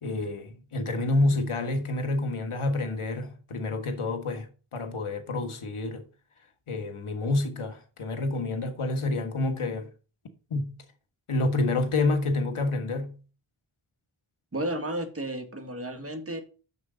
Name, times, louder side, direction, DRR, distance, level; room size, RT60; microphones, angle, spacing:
voice 1, 0.0-6.0 6.7-9.9 10.5-10.7 11.3-13.1, left 2 dB, 90° left, 1.5 m, -28 dB
voice 2, 14.5-16.4, right 1 dB, 25° right, 1.8 m, -32 dB
7.2 x 6.5 x 5.1 m
wide cardioid pair, 60°, 49 cm